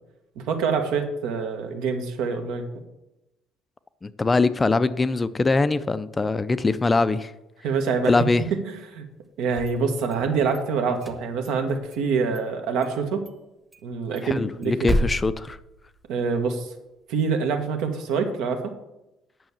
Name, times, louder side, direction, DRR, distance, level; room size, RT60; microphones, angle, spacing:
voice 1, 0.5-2.7 7.6-8.1 8.5-9.0 9.4-13.2 13.8-14.9 16.1-16.7 17.1-18.6, right 5 dB, 80° right, 5 dB, 1.5 m, -25 dB
voice 2, 4.0-7.3 8.1-8.4 14.2-15.6, left 3 dB, 15° left, 14 dB, 0.3 m, -22 dB
sound 1, 9.4-10.6 10.9-12.1 12.3-12.4 12.8-13.0 13.2-13.3 13.7-16.3, equal, 10° right, 0.9 m, -31 dB
8.9 x 6.2 x 7.2 m, 0.95 s
cardioid pair, 150°, 0 cm